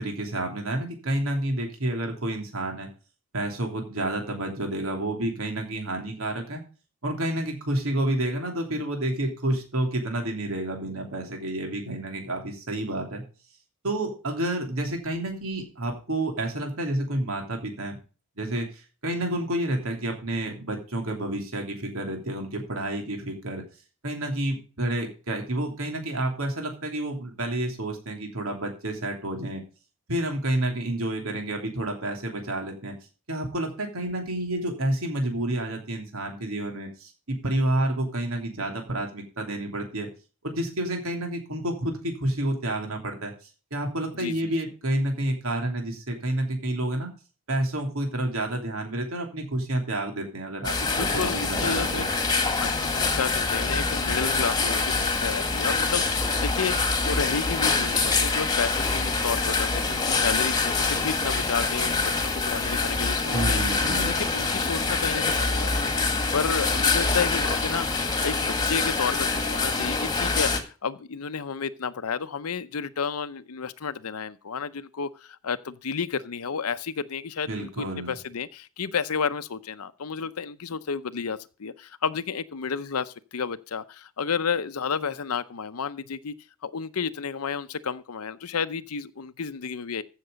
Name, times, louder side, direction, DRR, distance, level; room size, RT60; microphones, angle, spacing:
voice 1, 0.0-2.9 3.3-6.6 7.0-13.2 13.8-18.0 18.4-23.6 24.0-29.6 30.1-32.9 33.3-40.1 40.4-43.3 43.7-47.1 47.5-52.1 63.3-64.1 77.5-78.1, right 1 dB, 70° right, 3.0 m, -29 dB
voice 2, 44.2-44.5 50.9-52.1 52.5-86.3 86.6-90.0, left 6 dB, 85° left, 0.7 m, -31 dB
sound 1, 50.6-70.6, left 3 dB, 20° left, 1.7 m, -25 dB
15.0 x 6.7 x 5.1 m
head